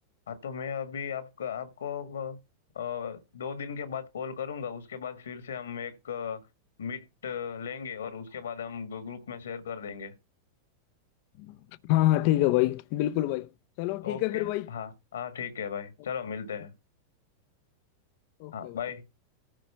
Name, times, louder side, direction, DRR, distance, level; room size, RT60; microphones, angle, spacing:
voice 1, 0.3-2.4 2.7-6.4 6.8-10.1 14.0-16.7 18.5-19.0, left 7 dB, 65° left, 1.7 m, -36 dB
voice 2, 11.8-13.5 13.8-14.7 18.4-18.8, left 16 dB, 45° left, 0.6 m, -26 dB
14.5 x 5.0 x 5.8 m
figure-of-eight pair, 90°, 0 cm